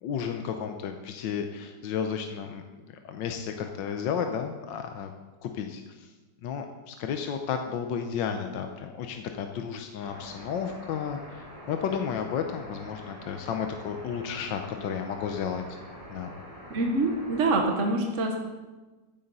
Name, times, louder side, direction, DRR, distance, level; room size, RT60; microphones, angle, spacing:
voice 1, 0.0-2.6 3.0-5.1 5.4-6.1 6.4-15.6 16.1-16.3, left 7 dB, 75° left, 5 dB, 1.5 m, -32 dB
sound 1, 10.0-17.6, equal, 10° left, 4.0 m, -45 dB
voice 2, 16.7-18.3, right 2 dB, 45° right, 2 dB, 1.3 m, -25 dB
14.5 x 10.0 x 4.1 m, 1.2 s
omnidirectional pair, 2.0 m